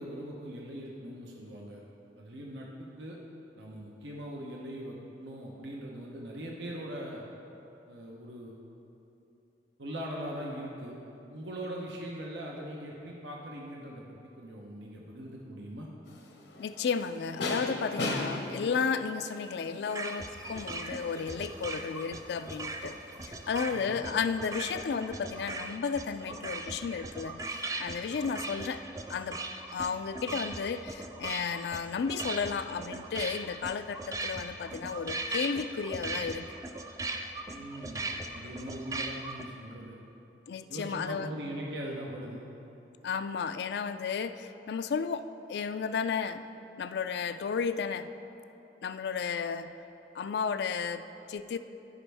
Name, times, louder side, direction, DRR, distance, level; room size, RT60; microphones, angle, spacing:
voice 1, 0.0-1.8 2.2-3.2 3.6-7.2 7.9-8.6 9.8-11.0 11.3-15.9 23.6-24.1 37.5-39.9 40.7-42.4, right 1 dB, 85° right, -2 dB, 0.9 m, -41 dB
sound 1, 16.1-23.9, left 2 dB, 90° left, 1.0 m, -40 dB
voice 2, 16.6-22.9 23.2-28.8 29.1-29.4 29.7-36.5 40.5-41.3 43.0-45.2 45.5-46.4 46.8-48.1 48.8-49.7 50.1-51.0 51.3-51.6, left 6 dB, 70° left, 11 dB, 0.3 m, -33 dB
sound 2, 19.9-39.4, right 2 dB, 20° right, 0.4 m, -39 dB
15.0 x 5.2 x 3.4 m, 2.9 s
head